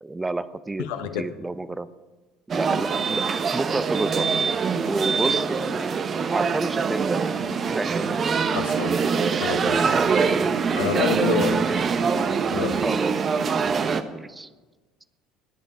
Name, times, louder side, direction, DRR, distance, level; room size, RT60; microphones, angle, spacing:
voice 1, 0.0-0.9 1.1-1.9 2.5-4.3 4.9-8.1 9.8-10.3 12.7-13.2 13.5-13.7 14.1-14.5, right 2 dB, 15° right, 14 dB, 0.8 m, -30 dB
voice 2, 0.8-1.2 8.5-9.0 9.4-9.9 10.8-11.6 12.5-12.8, left 10 dB, 70° left, 9 dB, 1.1 m, -27 dB
sound 1, 2.5-14.0, right 5 dB, 40° right, 1.1 m, -24 dB
21.0 x 9.0 x 5.0 m, 1.2 s
hypercardioid pair, 65°, 0 cm